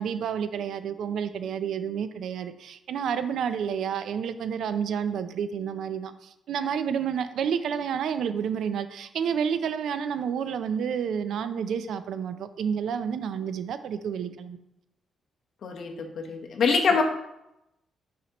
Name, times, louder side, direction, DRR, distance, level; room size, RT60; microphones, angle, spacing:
voice 1, 0.0-14.6, right 7 dB, 75° right, 11 dB, 0.4 m, -30 dB
voice 2, 15.6-17.0, left 5 dB, 60° left, 2 dB, 1.0 m, -24 dB
5.9 x 5.7 x 2.9 m, 0.86 s
cardioid pair, 120°, 0 cm